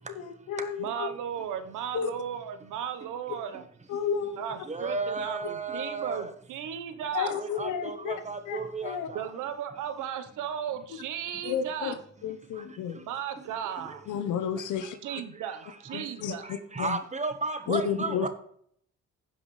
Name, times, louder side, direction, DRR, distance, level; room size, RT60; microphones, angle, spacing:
voice 1, 0.1-1.1 1.9-2.1 3.9-4.6 7.1-8.1 8.5-9.1 10.9-11.0 11.4-11.9 12.2-13.0 14.1-15.0 15.9-17.0 17.7-18.3, left 7 dB, 80° left, 8 dB, 1.0 m, -32 dB
voice 2, 0.8-3.6 4.4-7.3 9.1-12.0 13.1-14.0 15.0-16.4, right 9 dB, 90° right, 10 dB, 1.1 m, -35 dB
voice 3, 4.7-6.2 7.4-8.9 16.7-18.3, right 3 dB, 25° right, 8 dB, 1.3 m, -33 dB
16.0 x 5.6 x 3.3 m, 0.64 s
cardioid pair, 90°, 30 cm